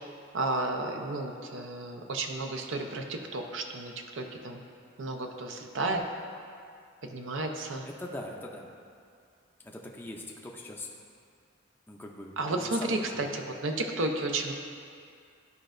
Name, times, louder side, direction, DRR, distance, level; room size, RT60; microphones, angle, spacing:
voice 1, 0.3-4.6 5.0-6.0 7.1-7.9 12.4-14.5, right 2 dB, 70° right, 3 dB, 0.6 m, -32 dB
voice 2, 8.0-8.7 9.6-10.9 11.9-13.3, left 1 dB, 10° left, -1 dB, 0.5 m, -41 dB
12.0 x 5.0 x 2.5 m, 2.3 s
head